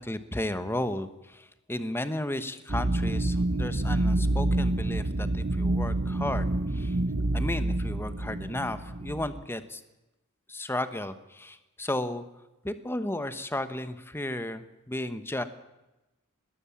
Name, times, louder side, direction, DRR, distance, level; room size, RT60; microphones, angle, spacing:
voice 1, 0.0-6.9 7.3-9.8 10.5-12.2 12.6-15.4, left 1 dB, 10° left, 11 dB, 1.1 m, -34 dB
sound 1, 2.7-9.4, right 2 dB, 40° right, 0.9 m, -28 dB
20.0 x 18.0 x 7.2 m, 1.0 s
head